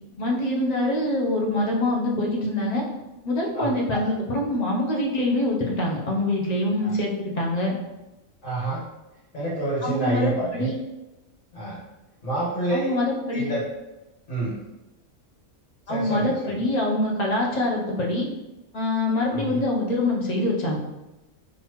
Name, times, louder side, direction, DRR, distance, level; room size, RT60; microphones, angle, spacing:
voice 1, 0.2-2.8 3.2-7.7 9.8-10.7 12.7-13.5 15.9-18.3 18.7-20.8, left 1 dB, 40° left, -2 dB, 0.7 m, -25 dB
voice 2, 3.5-4.0 6.8-6.9 8.4-8.9 9.3-10.7 11.5-11.8 12.2-12.9 13.3-13.6 14.3-14.6 15.9-16.6 19.3-19.6, right 2 dB, 65° left, -9 dB, 1.7 m, -28 dB
4.0 x 2.8 x 3.0 m, 1.0 s
omnidirectional pair, 1.4 m